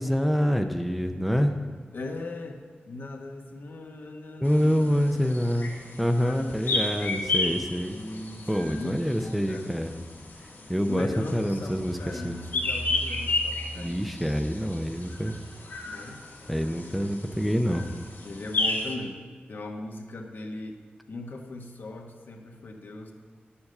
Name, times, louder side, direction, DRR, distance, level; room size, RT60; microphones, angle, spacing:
voice 1, 0.0-1.5 4.4-5.7 6.0-8.0 8.5-9.9 10.7-12.0 12.2-12.4 13.8-15.4 16.5-17.9, equal, ahead, 5 dB, 0.6 m, -26 dB
voice 2, 1.9-5.5 6.2-6.3 7.9-9.7 10.8-14.1 15.8-16.9 18.2-20.8 21.1-23.1, left 2 dB, 70° left, 2 dB, 1.2 m, -39 dB
sound 1, 4.4-18.9, left 2 dB, 90° left, 1.8 m, -33 dB
10.0 x 7.2 x 6.5 m, 1.6 s
wide cardioid pair, 100°, 4 cm